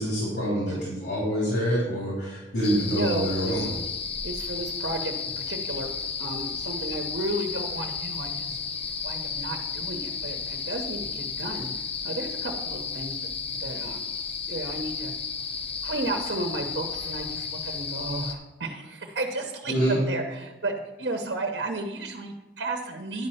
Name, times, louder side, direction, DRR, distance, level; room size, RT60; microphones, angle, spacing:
voice 1, 0.0-3.7 19.7-20.0, equal, 80° left, -6 dB, 3.3 m, -26 dB
sound 1, 2.6-18.3, left 5 dB, 35° left, 0.8 m, -33 dB
voice 2, 2.9-3.7 4.2-5.9 6.2-8.6 9.0-11.7 12.0-13.2 13.5-14.0 14.5-15.1 15.8-23.3, right 2 dB, 65° right, 3 dB, 1.0 m, -33 dB
10.5 x 5.5 x 5.6 m, 1.0 s
head